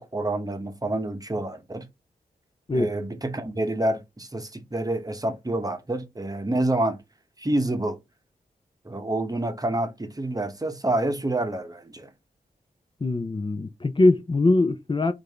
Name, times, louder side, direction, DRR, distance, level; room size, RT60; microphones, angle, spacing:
voice 1, 0.0-1.9 2.7-7.0 7.4-8.0 8.8-12.1, right 1 dB, 20° right, 0.9 m, -28 dB
voice 2, 13.0-15.1, left 2 dB, 30° left, 0.5 m, -22 dB
4.6 x 2.6 x 3.3 m
cardioid pair, 45°, 16 cm